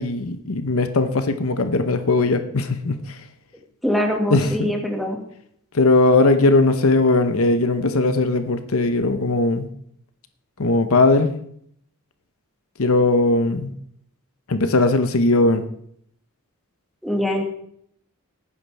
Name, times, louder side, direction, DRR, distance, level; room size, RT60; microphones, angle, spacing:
voice 1, 0.0-3.2 4.3-4.7 5.7-9.7 10.6-11.3 12.8-13.7 14.5-15.6, left 2 dB, 65° left, 8 dB, 0.9 m, -19 dB
voice 2, 3.8-5.2 17.0-17.4, equal, ahead, 0 dB, 1.8 m, -23 dB
18.5 x 9.7 x 3.4 m, 0.68 s
head